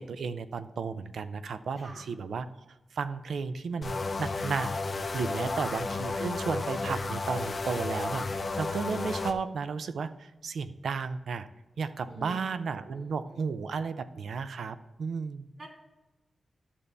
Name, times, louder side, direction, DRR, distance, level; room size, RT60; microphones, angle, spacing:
voice 1, 0.0-2.5 2.9-4.7 5.1-11.5 11.8-15.5, right 5 dB, 85° right, 12 dB, 0.5 m, -34 dB
sound 1, 3.8-9.3, left 3 dB, 35° left, 0.5 m, -33 dB
voice 2, 5.4-5.8 12.1-12.4 12.9-13.5 15.6-15.7, right 2 dB, 40° right, -1 dB, 2.7 m, -47 dB
11.0 x 6.8 x 3.3 m, 1.1 s
wide cardioid pair, 180°, 0 cm